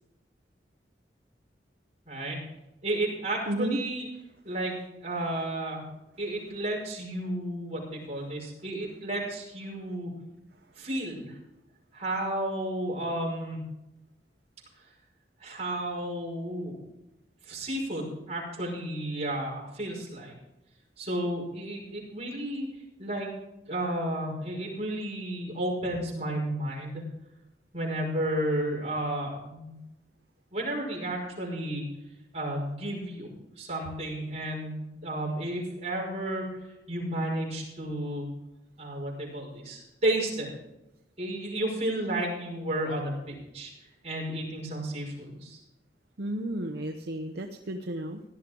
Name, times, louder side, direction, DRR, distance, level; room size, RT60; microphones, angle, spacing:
voice 1, 2.1-2.4 2.8-4.1 4.4-4.8 5.0-5.8 6.2-10.1 10.8-11.3 11.9-13.6 15.4-16.8 17.5-20.3 21.0-22.7 23.0-23.3 23.7-27.0 27.7-29.8 30.5-31.8 32.3-33.3 33.6-36.4 36.9-38.3 38.8-40.5 41.2-43.7 44.0-45.6, right 1 dB, 40° right, -3 dB, 5.5 m, -32 dB
voice 2, 3.5-3.8 46.2-48.2, right 1 dB, 60° right, 5 dB, 0.8 m, -32 dB
17.5 x 11.5 x 3.8 m, 0.94 s
head